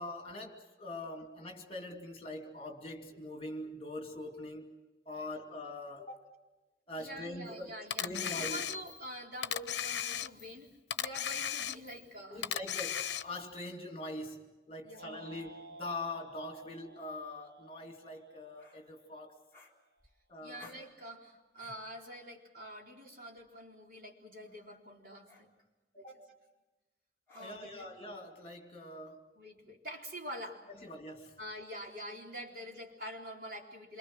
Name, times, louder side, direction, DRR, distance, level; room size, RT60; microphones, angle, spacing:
voice 1, 0.0-4.8 5.1-6.3 6.9-7.7 8.0-8.6 12.3-19.4 20.3-20.7 25.9-26.1 27.4-29.3 30.7-31.4, left 1 dB, 35° left, 4 dB, 2.5 m, -43 dB
voice 2, 7.0-10.7 11.0-12.5 14.8-15.3 20.4-25.5 26.0-26.3 27.3-27.9 29.4-30.6 31.4-34.0, equal, 50° right, 0 dB, 4.0 m, -46 dB
Camera, 7.9-9.0 9.4-10.6 10.9-12.0 12.4-13.5, left 9 dB, 80° left, 0.7 m, -36 dB
sound 1, 15.0-19.3, right 1 dB, 70° right, 1.7 m, -55 dB
sound 2, 18.6-18.8 19.5-20.2 20.6-20.9 21.6-21.9 23.4-23.6 24.4-24.7 25.3-25.5 27.3-27.8, left 3 dB, 15° left, 4.0 m, -58 dB
27.5 x 25.0 x 6.2 m, 1.1 s
head